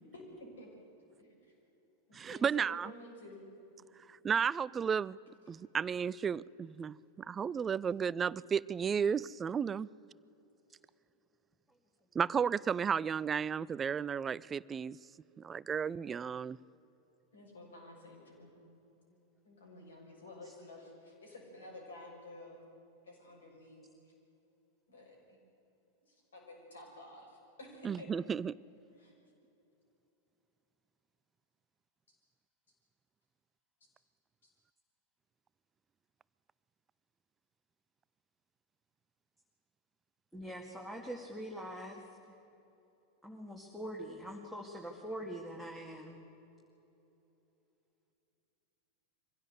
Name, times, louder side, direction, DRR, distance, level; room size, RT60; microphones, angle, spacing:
voice 1, 0.1-0.7 1.2-1.5 2.1-3.5 17.3-18.5 19.4-22.6 23.0-24.1 24.9-25.4 26.1-28.1 29.0-29.1, left 1 dB, 70° left, 6.7 m, -52 dB
voice 2, 2.1-2.9 4.1-5.2 5.5-9.9 12.1-15.0 15.4-16.6 27.8-28.6, right 7 dB, 20° right, 0.4 m, -33 dB
voice 3, 40.3-42.0 43.2-46.2, equal, ahead, 2.1 m, -43 dB
23.5 x 16.0 x 8.2 m
figure-of-eight pair, 90°, 0 cm